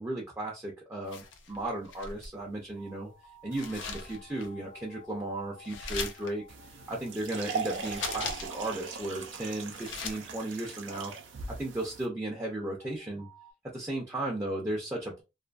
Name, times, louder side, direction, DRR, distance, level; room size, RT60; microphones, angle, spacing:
voice 1, 0.0-3.1 3.4-6.4 6.7-11.1 11.6-13.3 13.7-15.2, right 1 dB, 15° right, -3 dB, 0.5 m, -35 dB
sound 1, 1.1-2.4 3.5-4.5 5.6-6.3 7.7-8.7 9.0-9.1 9.5-10.2, left 4 dB, 90° left, 0.5 m, -39 dB
sound 2, 2.8-11.8 12.8-13.5, left 4 dB, 65° left, 0.8 m, -57 dB
sound 3, 6.5-12.1, right 5 dB, 85° right, 0.5 m, -39 dB
2.5 x 2.5 x 2.2 m, 0.27 s
head